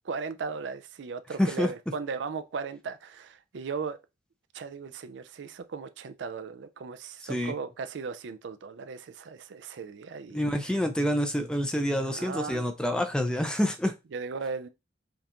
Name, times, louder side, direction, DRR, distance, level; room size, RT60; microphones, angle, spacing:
voice 1, 0.0-4.0 4.5-10.4 12.1-12.7 14.1-14.7, right 5 dB, 85° right, 0.4 m, -37 dB
voice 2, 1.4-1.7 7.3-7.5 10.3-13.9, equal, 5° left, 0.5 m, -27 dB
5.2 x 2.5 x 2.9 m
head